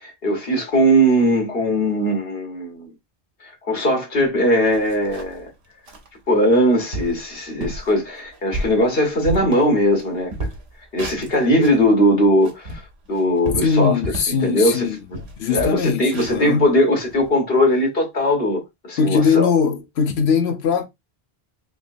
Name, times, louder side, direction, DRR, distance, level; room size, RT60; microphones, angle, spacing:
voice 1, 0.0-2.9 3.4-5.5 6.3-10.3 10.9-12.8 13.1-13.9 14.4-14.9 15.5-19.5, equal, 65° left, 1.5 m, -19 dB
sound 1, 4.2-4.3 4.6-5.4 5.9-6.1 6.5-6.6 6.9-7.2 7.6-7.9 8.3-10.0 10.3-11.8 12.3-14.4 14.8-14.9 15.1-17.3, right 1 dB, 80° right, 1.2 m, -32 dB
voice 2, 13.6-15.0 15.4-16.7 19.0-20.9, left 6 dB, 80° left, 0.9 m, -20 dB
3.6 x 2.8 x 2.5 m
omnidirectional pair, 1.1 m